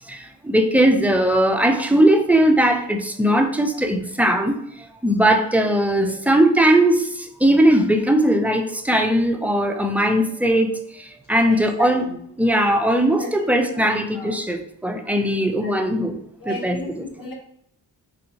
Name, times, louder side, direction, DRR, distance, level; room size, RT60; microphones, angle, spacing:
voice 1, 0.4-4.6 5.0-7.1 7.4-10.7 11.3-12.0 12.4-16.1 16.5-16.8, right 1 dB, 5° right, 5 dB, 0.3 m, -19 dB
voice 2, 11.5-12.2 13.1-13.3 13.7-14.3 15.4-15.8 16.4-17.3, left 2 dB, 50° left, -1 dB, 1.1 m, -34 dB
3.4 x 2.6 x 2.8 m, 0.69 s
cardioid pair, 60°, 42 cm